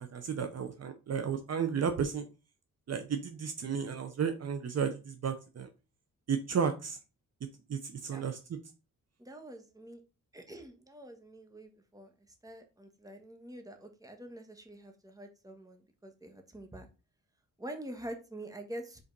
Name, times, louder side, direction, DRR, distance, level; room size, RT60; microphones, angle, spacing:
voice 1, 0.0-2.3 2.9-5.7 6.3-7.0 7.7-8.4, right 6 dB, 50° right, 8 dB, 0.8 m, -33 dB
voice 2, 9.2-10.0 10.3-16.9 17.6-19.0, right 1 dB, 10° right, 5 dB, 1.4 m, -46 dB
5.3 x 4.1 x 5.3 m, 0.31 s
cardioid pair, 110°, 33 cm